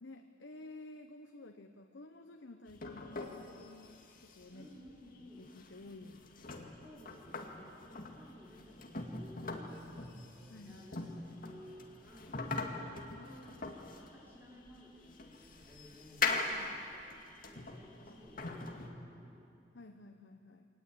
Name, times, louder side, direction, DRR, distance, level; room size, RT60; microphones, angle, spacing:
voice 1, 0.0-4.7 5.2-6.8 10.5-10.9 13.1-13.5 16.5-16.8 19.7-20.7, left 2 dB, 75° left, 5 dB, 1.1 m, -53 dB
sound 1, 2.7-18.9, left 4 dB, 50° left, 2.2 m, -42 dB
voice 2, 4.5-5.5 6.8-12.8 13.3-16.3 16.8-19.4, equal, 10° right, -4 dB, 4.8 m, -56 dB
23.5 x 19.5 x 8.8 m, 2.5 s
head